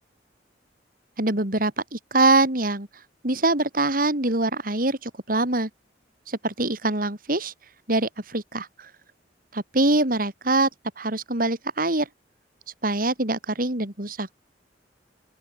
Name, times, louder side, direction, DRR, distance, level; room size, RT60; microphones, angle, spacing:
voice 1, 1.2-2.9 3.2-5.7 6.3-7.5 7.9-8.9 9.5-10.7 11.0-12.1 12.8-14.3, right 2 dB, 50° right, 3.9 m, -24 dB
open air
head